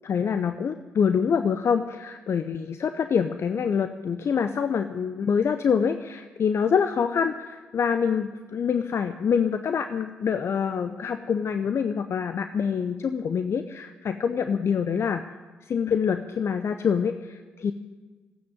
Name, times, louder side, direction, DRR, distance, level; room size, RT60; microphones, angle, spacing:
voice 1, 0.0-15.2 15.7-17.7, left 6 dB, 50° left, 9 dB, 0.7 m, -25 dB
14.5 x 9.4 x 9.8 m, 1.3 s
hypercardioid pair, 45°, 6 cm